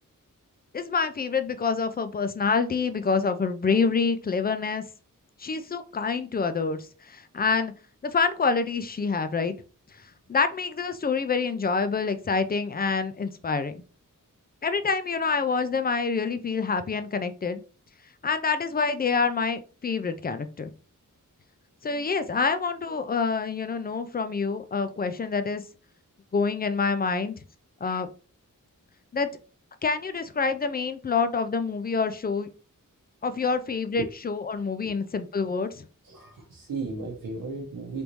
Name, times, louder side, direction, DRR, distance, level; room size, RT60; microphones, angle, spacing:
voice 1, 0.7-4.8 5.4-7.7 8.0-9.5 10.0-13.8 14.6-17.6 18.2-20.7 21.8-25.6 26.3-27.4 27.8-28.1 29.1-29.3 29.8-32.5 33.2-35.8, left 5 dB, 30° left, 10 dB, 0.4 m, -27 dB
voice 2, 36.0-38.0, right 3 dB, 90° right, 0 dB, 0.7 m, -35 dB
3.4 x 2.6 x 3.0 m, 0.36 s
wide cardioid pair, 120°, 33 cm